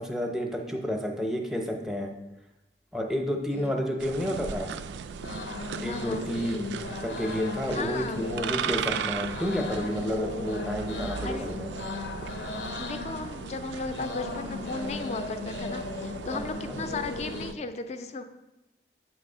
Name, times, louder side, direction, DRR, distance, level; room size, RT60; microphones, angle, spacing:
voice 1, 0.0-2.1 2.9-4.7 5.8-6.6 7.0-11.7 16.3-16.8, equal, 5° right, 2 dB, 0.6 m, -30 dB
sound 1, 4.0-17.5, right 6 dB, 80° right, 0.3 m, -37 dB
sound 2, 4.7-17.5, left 3 dB, 80° left, 0.6 m, -37 dB
voice 2, 5.8-6.3 7.7-8.3 8.9-9.1 11.2-11.5 12.8-18.2, left 3 dB, 40° left, 9 dB, 0.4 m, -36 dB
8.1 x 3.1 x 5.4 m, 0.98 s
head